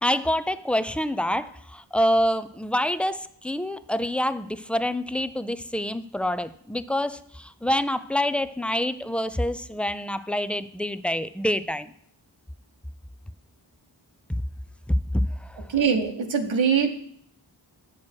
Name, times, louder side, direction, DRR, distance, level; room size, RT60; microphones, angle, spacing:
voice 1, 0.0-11.9 14.9-15.6, left 1 dB, 5° left, 13 dB, 0.3 m, -26 dB
voice 2, 15.7-16.9, right 6 dB, 80° right, 4 dB, 1.1 m, -22 dB
7.3 x 6.3 x 4.4 m, 0.65 s
cardioid pair, 45°, 46 cm